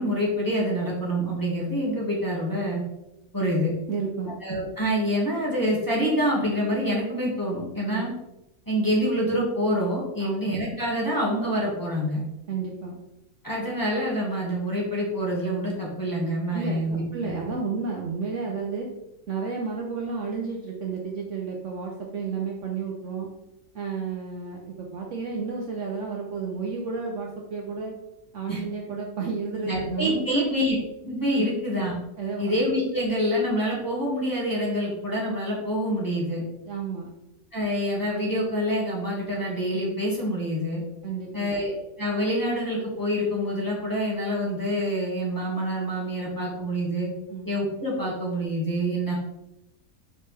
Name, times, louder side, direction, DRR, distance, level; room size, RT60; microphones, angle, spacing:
voice 1, 0.0-2.8 3.3-3.7 4.4-8.1 8.7-12.2 13.4-17.3 28.5-28.6 29.6-30.8 31.0-31.9 32.4-36.4 37.5-40.8 41.3-41.7 42.0-47.1 47.5-49.1, equal, 15° left, -6 dB, 1.7 m, -26 dB
voice 2, 3.9-4.3 7.9-8.1 10.2-10.4 12.5-13.0 16.5-18.9 19.3-23.3 23.7-27.9 28.3-30.4 31.3-31.4 32.2-32.5 36.7-37.1 41.0-41.5 47.3-47.5, right 5 dB, 55° right, -1 dB, 1.0 m, -31 dB
5.5 x 5.3 x 3.3 m, 0.91 s
omnidirectional pair, 1.7 m